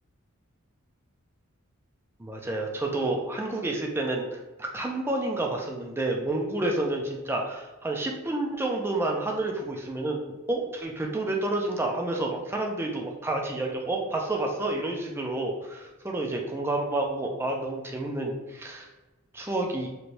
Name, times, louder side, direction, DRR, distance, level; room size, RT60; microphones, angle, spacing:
voice 1, 2.2-10.2 10.5-18.9 19.3-19.9, right 2 dB, 10° right, 0 dB, 0.3 m, -29 dB
3.1 x 2.8 x 2.6 m, 1.1 s
head